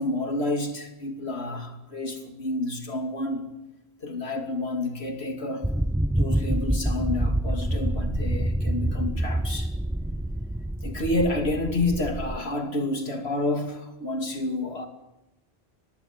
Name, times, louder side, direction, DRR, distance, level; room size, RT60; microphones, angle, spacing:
voice 1, 0.0-3.5 4.0-5.7 6.2-9.7 10.8-14.9, left 2 dB, 80° left, 2.9 m, -29 dB
sound 1, 5.6-12.4, right 1 dB, 5° right, 0.5 m, -27 dB
24.5 x 20.0 x 7.4 m
omnidirectional pair, 1.1 m